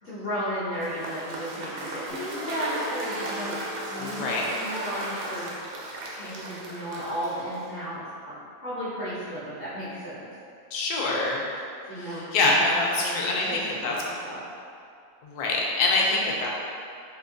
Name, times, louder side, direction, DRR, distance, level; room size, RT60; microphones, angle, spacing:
voice 1, 0.0-3.6 3.9-5.6 6.1-8.4 8.6-10.1 11.9-14.4, equal, 55° left, -11 dB, 0.6 m, -34 dB
Cheering / Applause / Crowd, 0.7-7.8, right 1 dB, 70° right, 0.9 m, -36 dB
Guitar, 2.1-6.1, left 1 dB, 40° right, 0.5 m, -40 dB
voice 2, 4.0-4.5 10.7-11.4 12.0-13.9 15.2-16.5, left 2 dB, 75° left, -2 dB, 1.1 m, -25 dB
4.3 x 2.5 x 2.5 m, 2.4 s
omnidirectional pair, 1.8 m